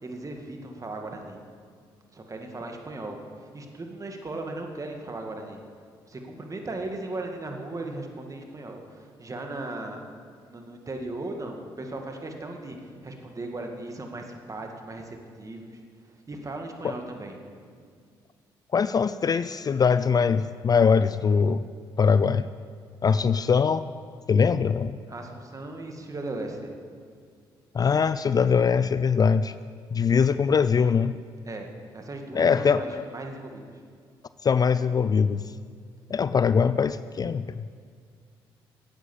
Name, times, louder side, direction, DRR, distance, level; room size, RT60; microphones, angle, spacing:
voice 1, 0.0-1.4 2.1-5.6 6.1-10.0 10.4-15.8 16.3-17.4 25.1-26.8 31.5-33.8, right 2 dB, 30° right, 3 dB, 2.0 m, -37 dB
voice 2, 18.7-21.6 22.0-22.5 23.0-23.9 24.3-25.0 27.7-29.5 29.9-31.2 32.3-33.1 34.4-35.4 36.1-37.6, left 6 dB, 35° left, 14 dB, 0.4 m, -22 dB
10.0 x 8.3 x 8.1 m, 2.1 s
supercardioid pair, 60°, 11 cm